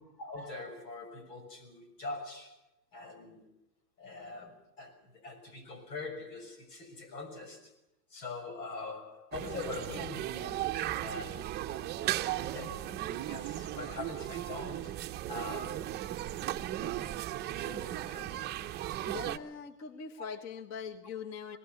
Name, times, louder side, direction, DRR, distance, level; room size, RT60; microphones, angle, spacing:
voice 1, 0.2-2.6 2.9-3.4 4.0-7.7 8.1-10.7 11.0-11.5 12.4-15.0 15.3-16.0 17.5-18.9 20.2-20.3, left 3 dB, 90° left, 8 dB, 6.6 m, -43 dB
sound 1, 9.3-19.4, right 13 dB, 20° right, 0.8 m, -36 dB
voice 2, 19.0-21.6, left 6 dB, 35° left, 10 dB, 1.4 m, -42 dB
27.0 x 18.5 x 6.7 m, 0.83 s
supercardioid pair, 140°, 48 cm